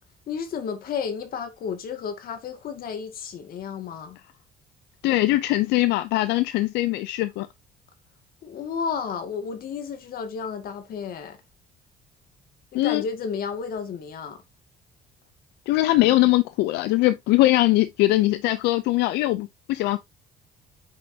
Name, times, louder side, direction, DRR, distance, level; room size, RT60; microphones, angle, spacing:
voice 1, 0.3-4.2 8.4-11.4 12.7-14.4, left 6 dB, 60° left, 2.1 m, -32 dB
voice 2, 5.0-7.5 12.7-13.0 15.7-20.0, left 17 dB, 90° left, 0.6 m, -21 dB
8.2 x 6.1 x 2.8 m
cardioid pair, 110°, 17 cm